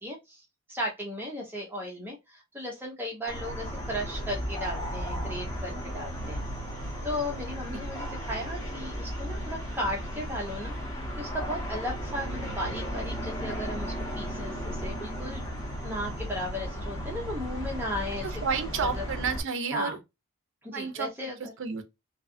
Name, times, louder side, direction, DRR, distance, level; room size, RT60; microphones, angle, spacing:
voice 1, 0.0-6.4 7.0-10.7 11.2-15.4 15.8-18.3 18.9-19.0 19.7-20.0 20.6-21.5, left 1 dB, 10° right, 0.5 m, -35 dB
sound 1, 3.3-19.4, equal, 15° left, 1.0 m, -35 dB
voice 2, 18.2-20.0 20.7-21.8, right 5 dB, 60° right, 0.5 m, -31 dB
2.7 x 2.3 x 2.4 m
head